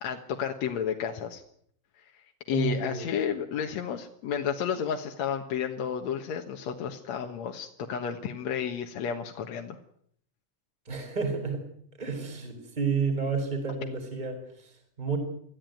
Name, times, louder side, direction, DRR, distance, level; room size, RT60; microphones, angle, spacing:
voice 1, 0.0-1.4 2.0-9.8, left 8 dB, 65° left, 3 dB, 2.4 m, -32 dB
voice 2, 2.5-3.1 10.9-11.6 12.0-15.2, right 5 dB, 15° right, 5 dB, 4.3 m, -31 dB
24.5 x 15.0 x 9.2 m, 0.67 s
omnidirectional pair, 3.6 m